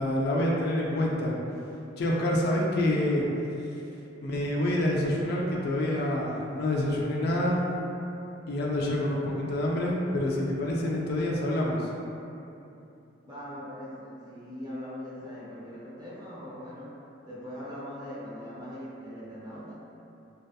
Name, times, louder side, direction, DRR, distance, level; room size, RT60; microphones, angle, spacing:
voice 1, 0.0-1.3 2.0-3.3 4.2-7.6 8.5-11.9, left 1 dB, 55° left, -3 dB, 0.3 m, -27 dB
voice 2, 13.2-16.9 17.2-19.7, equal, 20° right, -10 dB, 0.6 m, -41 dB
2.7 x 2.2 x 2.3 m, 2.8 s
head